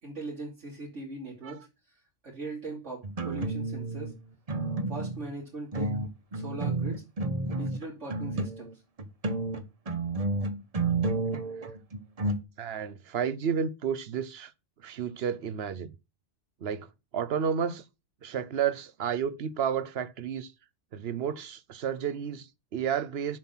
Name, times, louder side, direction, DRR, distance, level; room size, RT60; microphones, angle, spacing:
voice 1, 0.0-1.7 2.2-4.1 4.9-6.0 6.3-7.0 7.5-8.7, right 2 dB, 80° right, 3.3 m, -40 dB
sound 1, 3.0-4.1 4.5-5.3 5.7-8.7 9.0-12.4, right 2 dB, 35° right, 1.0 m, -31 dB
voice 2, 12.6-14.5 14.8-15.9 16.6-16.9 17.1-17.8 18.2-20.5 20.9-23.4, right 8 dB, 60° right, 0.9 m, -31 dB
7.4 x 5.7 x 6.1 m
omnidirectional pair, 1.2 m